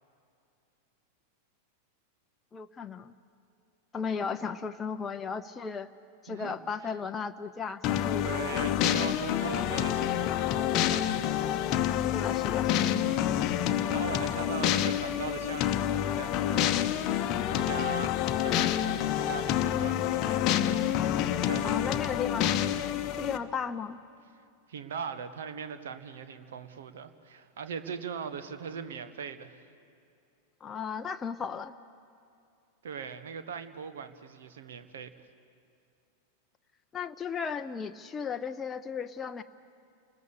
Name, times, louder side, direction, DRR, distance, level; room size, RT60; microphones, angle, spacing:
voice 1, 2.5-3.1 3.9-5.9 6.2-8.7 12.0-12.8 21.6-22.6 23.2-24.0 30.6-31.7 36.9-39.4, left 6 dB, 20° left, 7 dB, 0.6 m, -35 dB
voice 2, 6.3-6.6 6.8-6.9 8.2-11.7 12.7-13.0 13.9-18.1 18.4-20.5 21.5-22.2 24.7-29.6 32.8-35.1, right 6 dB, 60° right, 10 dB, 1.3 m, -40 dB
sound 1, 7.8-23.4, left 11 dB, 35° left, 0.9 m, -28 dB
29.5 x 20.5 x 6.9 m, 2.6 s
figure-of-eight pair, 90°, 0 cm